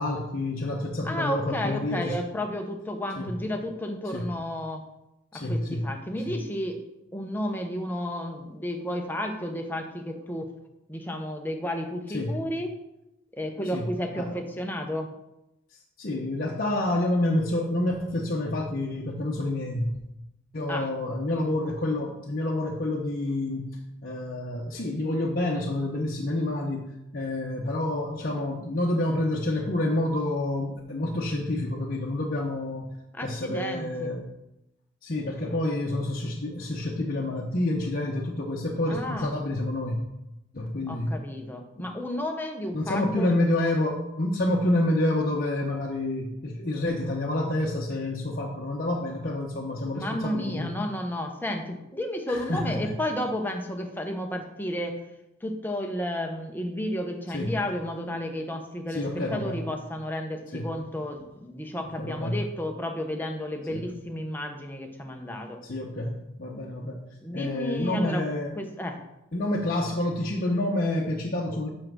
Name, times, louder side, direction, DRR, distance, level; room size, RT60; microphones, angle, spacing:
voice 1, 0.0-2.2 3.2-3.3 4.1-4.3 5.3-5.9 6.3-6.4 12.1-12.4 13.7-13.9 14.1-14.4 16.0-20.0 20.5-32.9 33.2-34.3 35.0-40.0 40.5-41.2 41.8-41.9 42.7-50.8 52.3-52.9 57.3-57.5 58.9-59.6 60.5-60.8 62.0-62.4 63.7-63.9 65.6-68.6 69.3-71.7, left 1 dB, 45° left, -2 dB, 0.9 m, -28 dB
voice 2, 1.0-4.8 5.3-6.8 7.1-10.5 10.9-12.7 13.3-15.1 20.7-20.9 33.1-34.2 38.9-39.4 40.9-43.3 49.9-55.0 55.4-65.6 67.2-68.2 68.6-69.0, left 1 dB, 10° left, 3 dB, 0.9 m, -32 dB
6.3 x 5.6 x 6.1 m, 0.91 s
head